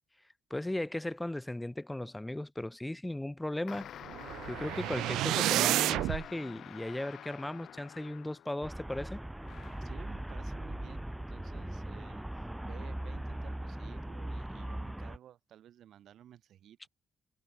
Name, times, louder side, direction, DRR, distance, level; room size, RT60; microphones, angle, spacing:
voice 1, 0.5-3.9 4.4-9.2, left 1 dB, 10° left, 5.0 m, -37 dB
sound 1, 3.7-8.7 9.4-10.0, left 10 dB, 70° left, 4.1 m, -48 dB
sound 2, 4.1-6.2, right 15 dB, 90° right, 0.6 m, -30 dB
Traffic noise roadway noise, 8.6-15.2, right 1 dB, 5° right, 3.9 m, -40 dB
voice 2, 9.8-16.9, right 11 dB, 70° right, 6.6 m, -54 dB
cardioid pair, 90°, 0 cm